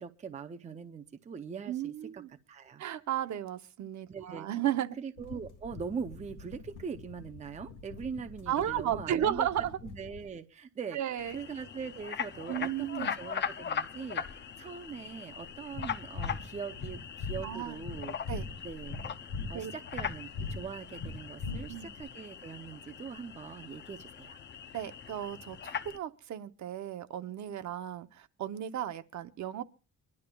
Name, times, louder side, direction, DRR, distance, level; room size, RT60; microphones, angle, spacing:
voice 1, 0.0-2.2 2.5-2.8 4.1-4.5 5.0-9.5 9.8-11.0 11.3-12.7 13.0-18.2 18.6-19.0 19.5-24.4, right 6 dB, 20° right, 0.5 m, -42 dB
voice 2, 1.7-2.3 2.8-5.0 8.5-9.7 10.9-11.4 12.5-13.1 17.4-17.8 18.3-18.5 19.5-19.7 21.4-21.9 24.7-29.6, right 11 dB, 60° right, 0.8 m, -34 dB
sound 1, 5.2-10.3, left 4 dB, 70° left, 1.6 m, -48 dB
sound 2, 11.2-26.0, left 7 dB, 35° left, 0.5 m, -40 dB
sound 3, 15.7-22.0, left 4 dB, 55° left, 3.8 m, -39 dB
25.0 x 12.0 x 2.3 m
cardioid pair, 170°, 32 cm